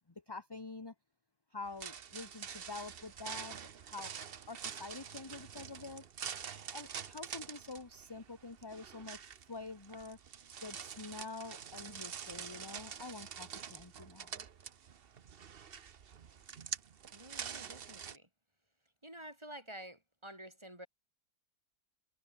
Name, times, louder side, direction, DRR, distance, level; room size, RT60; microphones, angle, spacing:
voice 1, 0.3-0.9 1.5-3.6 3.9-4.1 4.5-6.1 6.7-10.2 10.6-14.4, left 3 dB, 15° left, 1.0 m, -47 dB
sound 1, 1.7-18.2, right 7 dB, 45° right, 0.9 m, -46 dB
voice 2, 17.1-18.3 19.0-20.9, right 1 dB, 15° right, 5.3 m, -50 dB
omnidirectional pair, 1.8 m